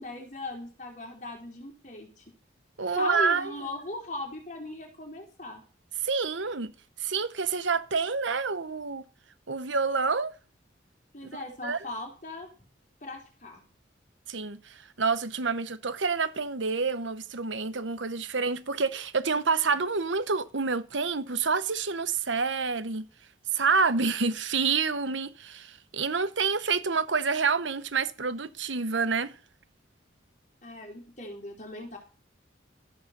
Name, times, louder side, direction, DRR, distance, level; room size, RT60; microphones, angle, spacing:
voice 1, 0.0-2.2 2.9-5.6 11.1-12.5 13.0-13.6 30.6-32.0, left 2 dB, 40° left, 4.3 m, -38 dB
voice 2, 2.8-3.5 6.0-6.7 7.0-9.0 9.5-10.3 11.2-11.8 14.3-23.1 23.5-29.3, right 4 dB, 80° right, 1.1 m, -28 dB
13.5 x 8.4 x 6.8 m
head